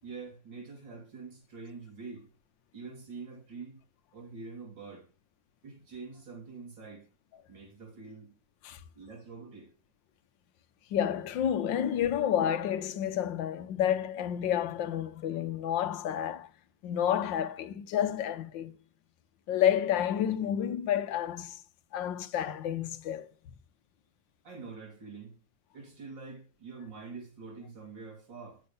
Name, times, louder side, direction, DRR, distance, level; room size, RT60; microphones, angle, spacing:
voice 1, 0.0-2.3 2.7-3.8 4.1-5.1 5.6-7.1 7.5-8.3 9.0-9.7 24.4-25.4 25.7-28.6, right 4 dB, 85° right, 3.9 m, -45 dB
voice 2, 10.9-16.5 16.8-18.7 19.5-21.6 21.9-23.3, left 10 dB, 90° left, 1.6 m, -30 dB
8.6 x 7.5 x 5.3 m
omnidirectional pair, 1.9 m